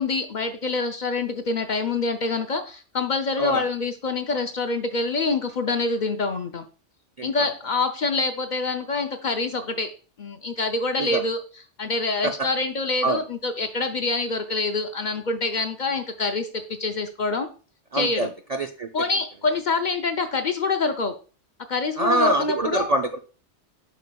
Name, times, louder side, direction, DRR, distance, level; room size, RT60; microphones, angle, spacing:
voice 1, 0.0-6.6 7.2-9.9 10.2-11.4 11.8-17.5 17.9-18.3 18.9-21.1 21.7-22.9, left 3 dB, 55° left, 7 dB, 0.6 m, -26 dB
voice 2, 7.2-7.5 11.0-11.2 12.2-12.3 13.0-13.2 17.9-18.9 22.0-23.2, right 2 dB, 55° right, 4 dB, 0.4 m, -25 dB
8.3 x 5.1 x 2.2 m, 0.37 s
omnidirectional pair, 1.2 m